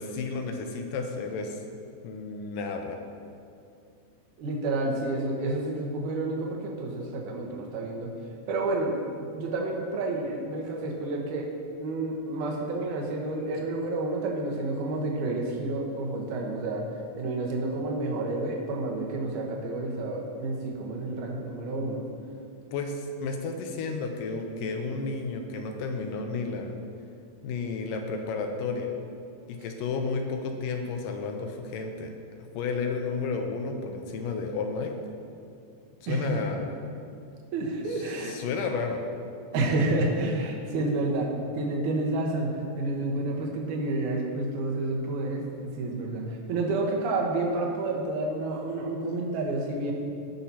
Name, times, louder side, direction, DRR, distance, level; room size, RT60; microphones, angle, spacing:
voice 1, 0.0-1.6 2.0-3.0 22.7-26.7 27.4-28.9 29.5-32.1 32.5-34.9 36.0-36.7 37.9-39.0, left 4 dB, 85° left, 4 dB, 2.3 m, -32 dB
voice 2, 4.4-8.1 8.5-11.5 11.8-16.9 17.2-22.0 36.1-36.4 37.5-38.4 39.5-49.9, right 2 dB, 70° right, -1 dB, 2.4 m, -30 dB
17.5 x 5.9 x 2.8 m, 2.4 s
omnidirectional pair, 3.9 m